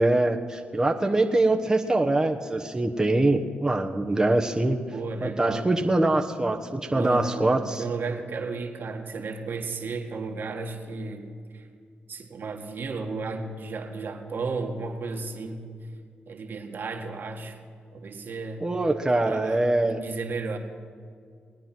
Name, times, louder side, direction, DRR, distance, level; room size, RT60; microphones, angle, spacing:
voice 1, 0.0-4.8 5.2-7.8 18.6-20.0, right 2 dB, 15° right, 2 dB, 1.1 m, -23 dB
voice 2, 4.9-5.7 6.9-11.7 12.1-15.7 16.3-17.6 17.9-18.7 19.2-20.6, right 3 dB, 60° right, 3 dB, 1.8 m, -34 dB
20.5 x 9.2 x 6.0 m, 2.1 s
supercardioid pair, 55°, 4 cm